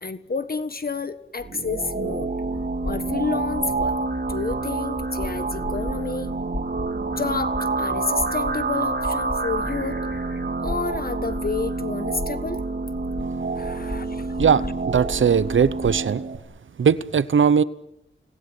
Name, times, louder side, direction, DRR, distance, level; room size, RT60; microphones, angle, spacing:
voice 1, 0.0-2.3 2.8-4.0 4.3-6.3 7.2-10.0 10.6-12.9 13.5-14.7, left 4 dB, 45° left, 11 dB, 1.5 m, -30 dB
sound 1, 1.4-16.4, right 3 dB, 55° right, 3.1 m, -28 dB
sound 2, 2.1-16.1, left 2 dB, 20° left, 2.9 m, -37 dB
voice 2, 14.4-16.2 16.8-17.6, right 7 dB, 70° right, 17 dB, 0.9 m, -19 dB
30.0 x 20.0 x 8.0 m, 0.86 s
wide cardioid pair, 65°, 21 cm